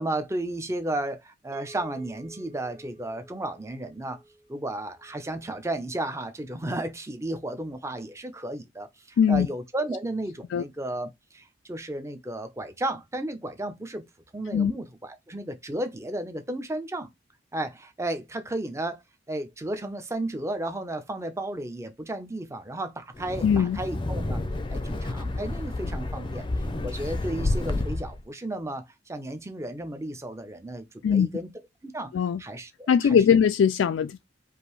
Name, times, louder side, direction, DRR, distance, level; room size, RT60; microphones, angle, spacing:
voice 1, 0.0-4.2 4.5-14.1 14.3-17.1 17.5-19.0 19.3-24.4 24.7-26.5 26.8-31.5 31.8-32.1 32.4-33.4, right 1 dB, 15° right, 0.6 m, -33 dB
sound 1, 1.5-6.0, right 1 dB, 45° right, 1.1 m, -51 dB
voice 2, 9.2-9.5 10.5-10.6 14.5-14.7 23.4-23.8 31.0-31.3 32.1-32.4 32.9-34.2, left 7 dB, 85° left, 0.3 m, -21 dB
Wind, 23.1-28.2, left 2 dB, 25° left, 0.5 m, -30 dB
5.0 x 2.6 x 3.1 m
head